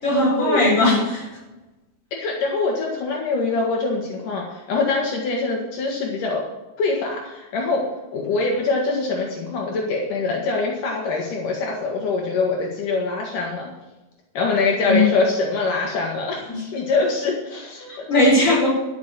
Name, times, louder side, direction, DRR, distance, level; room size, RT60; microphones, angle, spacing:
voice 1, 0.0-1.2 14.9-15.1 16.5-16.6 17.9-18.7, left 2 dB, 20° left, -3 dB, 4.7 m, -18 dB
voice 2, 2.1-6.4 6.8-7.8 8.1-13.7 14.3-18.4, left 3 dB, 70° left, -1 dB, 3.1 m, -24 dB
13.0 x 6.7 x 7.4 m, 1.1 s
omnidirectional pair, 3.9 m